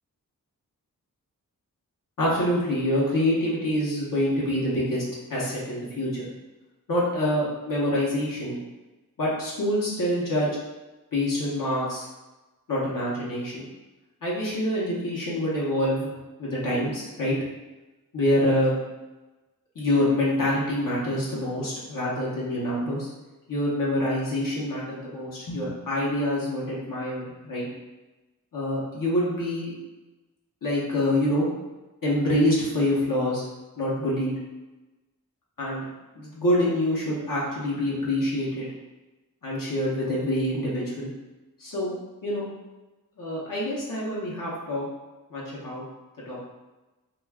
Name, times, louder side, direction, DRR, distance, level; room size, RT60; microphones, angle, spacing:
voice 1, 2.2-5.0 5.3-6.3 6.9-8.6 9.2-10.5 11.1-12.1 12.7-13.7 14.2-16.1 16.4-17.3 18.1-18.7 19.8-23.1 23.5-27.7 28.5-29.7 30.6-31.5 32.0-33.4 33.8-34.3 35.6-35.8 36.2-38.7 39.4-41.1 41.6-41.9 42.2-42.4 43.2-44.9 45.3-45.8 46.3-46.4, left 1 dB, 70° left, -6 dB, 0.8 m, -26 dB
2.4 x 2.3 x 3.3 m, 1.1 s
wide cardioid pair, 90°, 34 cm